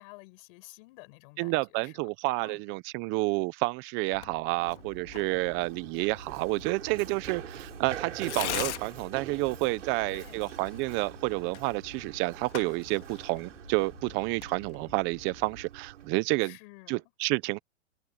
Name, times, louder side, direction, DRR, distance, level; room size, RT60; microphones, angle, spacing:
voice 1, 0.0-1.9 2.4-2.6 10.1-10.4 16.4-17.0, left 27 dB, 45° left, 5.6 m, -51 dB
voice 2, 1.4-16.6 16.9-17.6, right 24 dB, 35° right, 0.8 m, -30 dB
Tearing, 4.1-15.7, left 13 dB, 70° left, 2.2 m, -43 dB
Run, 4.6-16.1, right 10 dB, 80° right, 3.7 m, -44 dB
hypercardioid pair, 130°, 36 cm